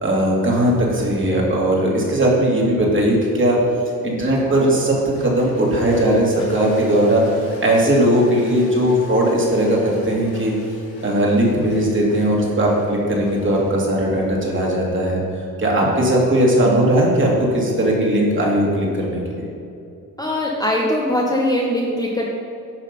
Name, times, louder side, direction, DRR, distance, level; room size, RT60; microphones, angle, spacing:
voice 1, 0.0-3.6 4.0-10.5 11.0-15.2 15.6-19.4, right 1 dB, 30° right, -3 dB, 2.6 m, -18 dB
sound 1, 4.3-15.0 16.2-16.8, left 1 dB, 80° left, 2.5 m, -36 dB
voice 2, 20.2-22.3, left 1 dB, 10° left, -3 dB, 1.2 m, -21 dB
10.5 x 6.4 x 5.4 m, 2.6 s
cardioid pair, 120°, 38 cm